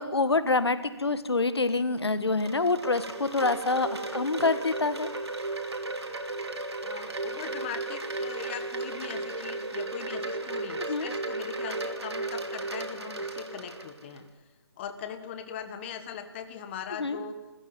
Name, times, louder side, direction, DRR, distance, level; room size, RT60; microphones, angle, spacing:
voice 1, 0.0-5.1 10.9-11.1 17.0-17.2, left 3 dB, 75° left, 12 dB, 1.6 m, -26 dB
Wind chime, 1.9-14.2, right 2 dB, 75° right, 3.5 m, -35 dB
voice 2, 6.8-14.3 14.8-17.3, left 8 dB, 25° left, 9 dB, 1.7 m, -40 dB
29.0 x 15.0 x 9.0 m, 1.1 s
figure-of-eight pair, 145°, 14 cm